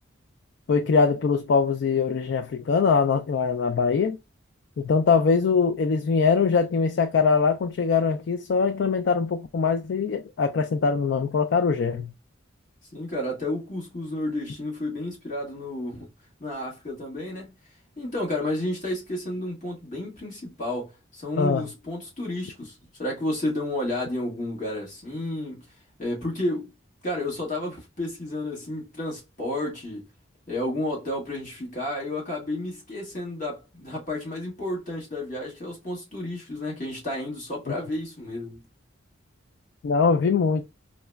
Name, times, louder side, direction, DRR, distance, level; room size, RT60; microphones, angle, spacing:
voice 1, 0.7-4.2 4.8-12.1 21.4-21.7 39.8-40.6, left 5 dB, 60° left, 0.3 m, -22 dB
voice 2, 12.9-16.1 16.4-17.5 18.0-25.7 26.0-26.7 27.0-30.0 30.5-38.6, left 1 dB, 40° left, 1.3 m, -31 dB
4.6 x 2.1 x 2.2 m
head